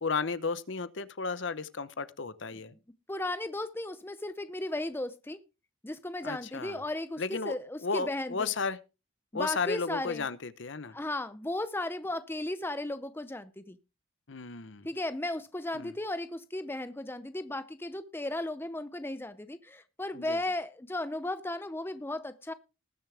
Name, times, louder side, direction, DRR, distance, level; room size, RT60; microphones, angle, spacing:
voice 1, 0.0-2.7 6.2-6.8 7.2-7.6 7.8-8.8 9.3-11.0 14.3-14.9 15.7-15.9 20.1-20.4, left 4 dB, 60° left, 0.8 m, -34 dB
voice 2, 3.1-5.4 5.8-8.5 9.3-10.2 10.9-13.8 14.8-22.5, left 1 dB, 10° left, 0.5 m, -35 dB
20.0 x 6.9 x 3.4 m
head